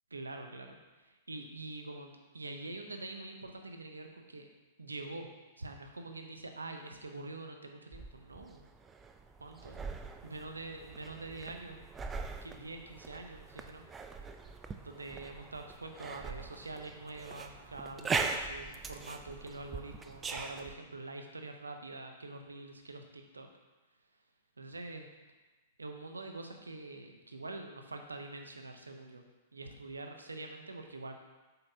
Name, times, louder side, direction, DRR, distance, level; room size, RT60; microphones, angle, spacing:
voice 1, 0.1-4.5 4.8-5.3 5.6-8.7 9.4-11.9 12.4-13.8 14.8-23.5 24.6-25.1 25.8-29.2 29.5-31.1, right 2 dB, 85° right, 4 dB, 0.8 m, -45 dB
sound 1, 7.9-20.7, right 4 dB, 15° right, 0.4 m, -41 dB
7.8 x 5.6 x 2.8 m, 1.2 s
figure-of-eight pair, 110°, 0 cm